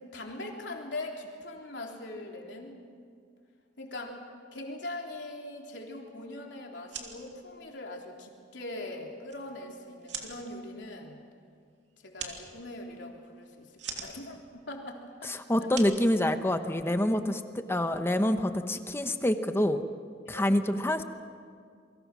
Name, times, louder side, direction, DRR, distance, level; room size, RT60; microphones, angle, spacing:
voice 1, 0.0-2.8 3.8-4.2 4.5-11.2 12.0-15.3 15.6-15.7 20.3-20.5, left 2 dB, 70° left, 0 dB, 3.7 m, -41 dB
sound 1, 6.7-16.9, right 6 dB, 70° right, 3.1 m, -46 dB
voice 2, 15.2-19.8 20.3-21.0, left 1 dB, 15° left, 8 dB, 1.0 m, -27 dB
28.5 x 23.5 x 6.2 m, 2.2 s
head